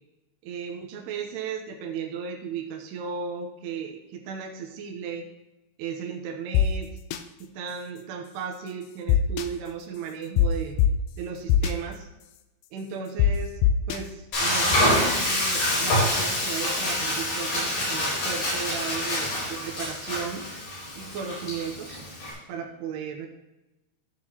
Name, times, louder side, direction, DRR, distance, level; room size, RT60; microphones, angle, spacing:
voice 1, 0.4-5.3 5.8-6.9 7.4-10.8 11.2-12.1 12.7-13.6 13.9-20.4 20.9-22.0 22.5-23.3, right 6 dB, 80° right, 1 dB, 3.0 m, -35 dB
sound 1, 6.5-6.6 7.1-7.2 9.1-9.5 10.4-10.5 10.8-10.9 11.5-11.7 13.2-13.3 13.6-14.0, left 12 dB, 80° left, 2.4 m, -19 dB
Frying (food), 14.3-22.3, left 1 dB, 65° left, 5.6 m, -26 dB
14.5 x 6.8 x 3.0 m, 1.0 s
omnidirectional pair, 4.6 m